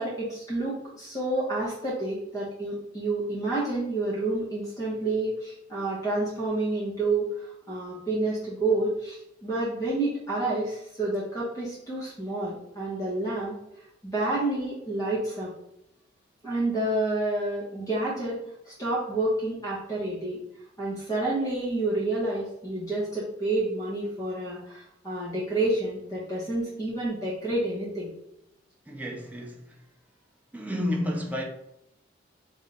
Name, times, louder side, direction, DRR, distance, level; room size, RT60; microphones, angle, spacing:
voice 1, 0.0-7.3 7.7-13.5 14.0-15.5 16.4-18.4 18.7-20.4 20.8-28.1, right 2 dB, 20° left, 1.0 m, -29 dB
voice 2, 28.9-29.8 30.5-31.4, left 1 dB, 10° right, 0.5 m, -31 dB
3.5 x 2.4 x 3.9 m
head